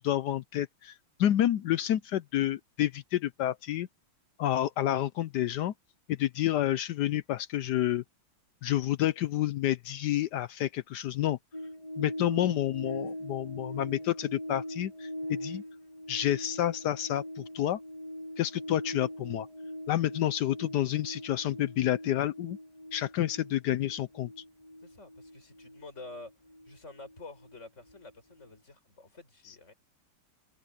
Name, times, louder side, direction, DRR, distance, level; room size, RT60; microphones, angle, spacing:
voice 1, 0.0-3.9 4.4-5.7 6.1-8.0 8.6-11.4 12.0-15.6 16.1-17.8 18.4-19.5 19.9-22.6 22.9-24.3, left 12 dB, 80° left, 0.9 m, -29 dB
sound 1, 11.5-28.1 28.4-28.5, left 1 dB, 15° left, 6.9 m, -42 dB
voice 2, 24.8-26.3 26.7-29.7, left 3 dB, 30° left, 6.1 m, -49 dB
open air
omnidirectional pair, 2.4 m